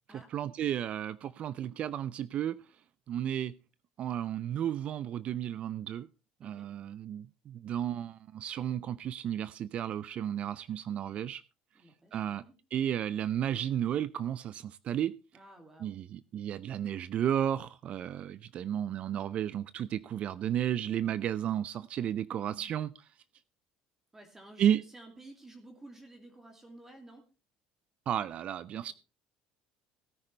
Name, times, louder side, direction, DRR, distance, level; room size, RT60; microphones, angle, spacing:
voice 1, 0.3-2.6 3.1-3.5 4.0-6.1 6.4-11.4 12.1-12.4 12.7-15.1 15.8-22.9 24.6-24.8 28.1-28.9, right 10 dB, 45° right, 0.5 m, -33 dB
voice 2, 11.7-12.5 15.3-16.0 24.1-27.2, right 2 dB, 15° right, 2.5 m, -53 dB
17.0 x 9.7 x 3.3 m
cardioid pair, 125°, 3 cm